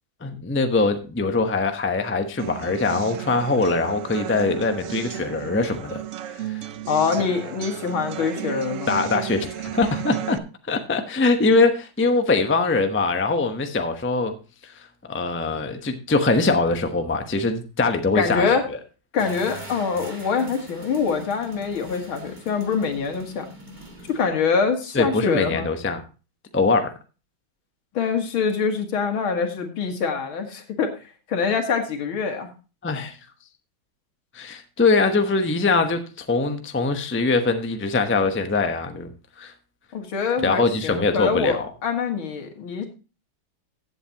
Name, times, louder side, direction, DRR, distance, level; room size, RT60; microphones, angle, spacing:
voice 1, 0.2-6.0 6.5-6.6 8.9-10.4 10.7-14.3 14.6-18.4 24.9-26.0 26.5-26.9 32.8-33.2 34.3-39.1 39.4-39.5 40.4-41.7, left 3 dB, 15° left, 6 dB, 0.4 m, -22 dB
sound 1, 2.4-10.4, right 12 dB, 90° right, 0.6 m, -34 dB
voice 2, 6.9-8.9 18.2-18.6 19.1-23.5 24.1-25.7 27.9-30.9 31.3-32.5 39.9-42.9, left 5 dB, 85° left, 5 dB, 2.5 m, -24 dB
sound 2, 19.2-24.3, equal, 25° right, 1.9 m, -42 dB
15.5 x 8.0 x 2.9 m, 0.32 s
omnidirectional pair, 2.2 m